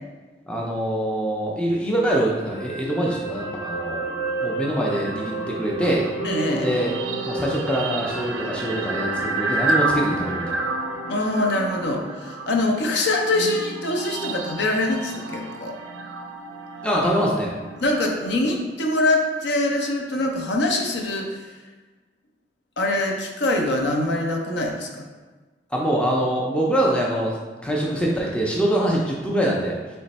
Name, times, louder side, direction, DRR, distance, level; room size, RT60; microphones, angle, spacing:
voice 1, 0.5-4.0 4.4-6.0 6.5-6.9 7.2-10.6 16.8-17.5 25.7-27.4 27.6-29.8, right 1 dB, 5° left, -3 dB, 0.4 m, -24 dB
sound 1, 2.2-14.5 14.8-15.0, right 2 dB, 90° left, 1.1 m, -32 dB
sound 2, 4.9-18.7, right 3 dB, 85° right, 0.4 m, -31 dB
voice 2, 6.2-6.8 11.1-15.8 17.8-21.5 22.8-25.1, left 2 dB, 65° left, 1 dB, 0.6 m, -24 dB
3.3 x 3.1 x 4.1 m, 1.3 s
head